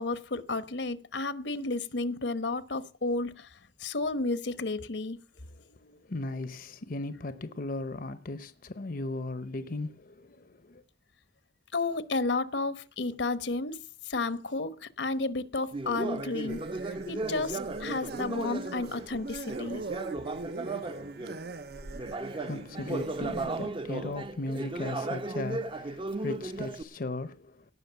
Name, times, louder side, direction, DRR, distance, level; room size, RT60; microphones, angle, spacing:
voice 1, 0.0-3.5 3.8-5.2 11.7-13.8 14.0-16.6 17.1-19.8, left 3 dB, 80° left, 1.1 m, -32 dB
voice 2, 5.4-10.8 20.9-27.6, left 2 dB, 50° left, 0.8 m, -38 dB
Conversation, 15.7-21.5 21.9-26.8, right 2 dB, 30° right, 0.7 m, -36 dB
sound 1, 16.5-23.7, right 3 dB, 60° right, 0.8 m, -41 dB
18.0 x 6.2 x 8.0 m
head